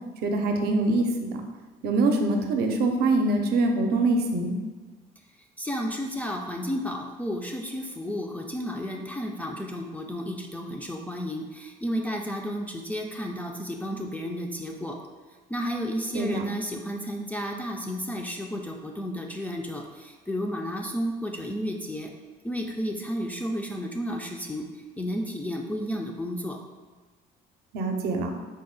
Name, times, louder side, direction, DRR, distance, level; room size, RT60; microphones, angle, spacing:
voice 1, 0.2-1.4 1.8-4.5 16.1-16.4 27.7-28.3, right 2 dB, 70° right, 4 dB, 0.5 m, -24 dB
voice 2, 5.6-15.0 15.5-22.1 22.4-24.6 25.0-26.6, equal, 10° left, 1 dB, 0.3 m, -32 dB
3.9 x 2.1 x 3.8 m, 1.4 s
cardioid pair, 110°, 17 cm